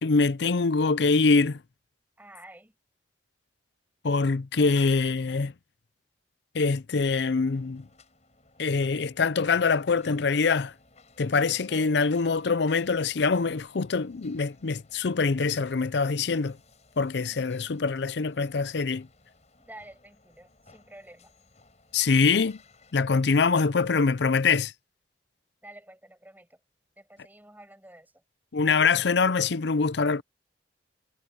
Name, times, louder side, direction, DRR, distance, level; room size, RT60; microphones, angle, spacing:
voice 1, 0.0-1.6 4.0-5.5 6.5-7.8 8.6-10.7 11.2-16.6 17.0-19.1 21.9-22.6 22.9-24.7 28.5-30.2, left 4 dB, 60° left, 0.5 m, -24 dB
voice 2, 2.2-2.8 4.6-4.8 11.5-12.1 19.6-21.3 25.6-26.6 27.0-28.2, right 1 dB, 10° right, 7.0 m, -50 dB
sound 1, 7.2-22.9, left 3 dB, 35° left, 7.6 m, -60 dB
head